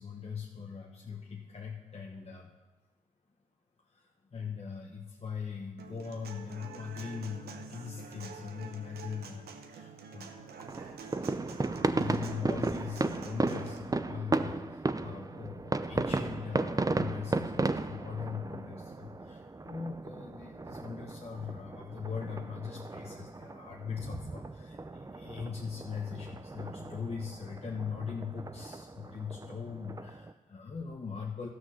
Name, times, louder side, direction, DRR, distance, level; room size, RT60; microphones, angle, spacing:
voice 1, 0.0-2.5 3.9-10.3 11.9-31.5, left 6 dB, 40° left, 0 dB, 1.1 m, -40 dB
Human voice / Acoustic guitar, 5.8-13.8, right 5 dB, 75° right, 0.9 m, -47 dB
sound 1, 10.6-30.3, right 3 dB, 20° right, 0.6 m, -35 dB
13.0 x 6.0 x 5.7 m, 1.2 s
supercardioid pair, 45°, 16 cm